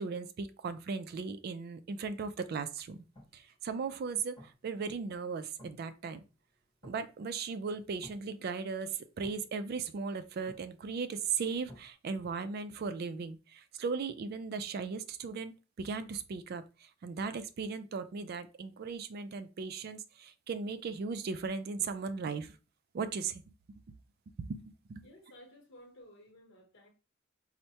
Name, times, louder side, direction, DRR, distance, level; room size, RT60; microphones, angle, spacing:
voice 1, 0.0-3.0 3.3-6.2 6.8-22.6 22.9-23.4 23.9-24.0 24.4-25.1, right 5 dB, 50° right, 0.3 m, -37 dB
sound 1, 3.0-11.9, left 1 dB, 25° left, 0.8 m, -59 dB
voice 2, 25.0-26.9, left 1 dB, 60° left, 0.9 m, -56 dB
4.4 x 2.1 x 2.7 m
head